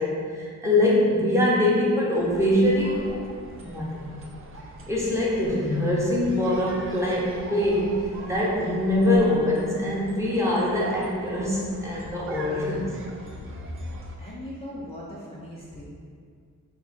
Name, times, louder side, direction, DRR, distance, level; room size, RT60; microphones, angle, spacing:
voice 1, 0.0-3.0 3.6-4.1 4.9-12.9, left 1 dB, 10° right, -6 dB, 0.9 m, -23 dB
sound 1, 2.1-14.2, right 2 dB, 40° right, 0.5 m, -43 dB
voice 2, 14.2-15.9, left 1 dB, 15° left, -7 dB, 0.6 m, -39 dB
3.7 x 2.7 x 4.0 m, 2.1 s
cardioid pair, 100°, 35 cm